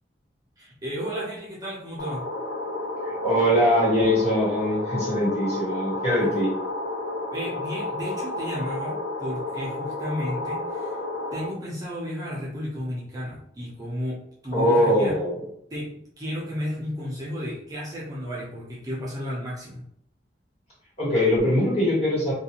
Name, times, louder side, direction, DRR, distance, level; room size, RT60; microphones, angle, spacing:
voice 1, 0.6-2.3 7.3-11.0 11.3-14.2 14.4-15.1 15.7-19.9, equal, 20° right, -6 dB, 0.6 m, -33 dB
sound 1, 2.0-11.5, left 2 dB, 80° left, 0.4 m, -31 dB
voice 2, 3.0-6.5 14.5-15.4 21.0-22.3, equal, 35° left, -7 dB, 1.4 m, -22 dB
2.5 x 2.3 x 2.8 m, 0.72 s
head